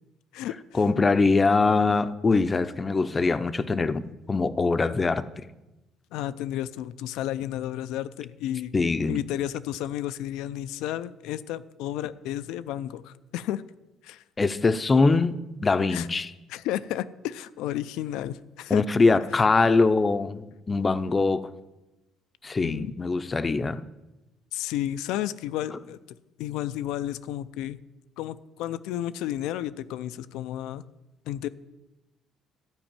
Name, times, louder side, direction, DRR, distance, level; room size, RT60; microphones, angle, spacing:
voice 1, 0.7-4.0 4.3-5.2 8.7-9.2 14.4-16.3 18.7-21.4 22.4-23.8, left 3 dB, 25° left, 0.6 m, -23 dB
voice 2, 6.1-8.7 9.1-13.6 14.0-14.2 15.9-16.1 16.5-18.8 22.6-22.9 24.5-26.0 26.4-27.8 28.2-30.8 31.3-31.5, left 12 dB, 85° left, 0.5 m, -32 dB
13.0 x 5.3 x 8.8 m
cardioid pair, 115°, 0 cm